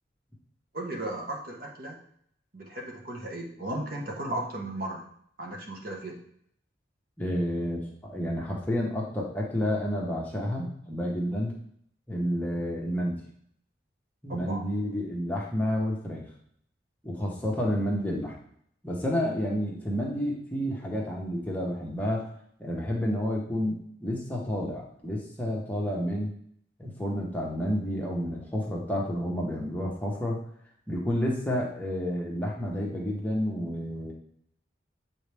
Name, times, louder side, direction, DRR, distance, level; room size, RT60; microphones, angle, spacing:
voice 1, 0.7-2.0 2.5-5.1 5.4-6.2 14.3-14.6, right 1 dB, 50° right, -1 dB, 1.3 m, -35 dB
voice 2, 7.2-11.5 12.1-13.2 14.2-16.2 17.0-18.4 18.8-22.3 22.6-26.3 26.8-30.4 30.9-34.1, equal, 10° left, -3 dB, 1.2 m, -30 dB
8.1 x 4.1 x 3.5 m, 0.67 s
head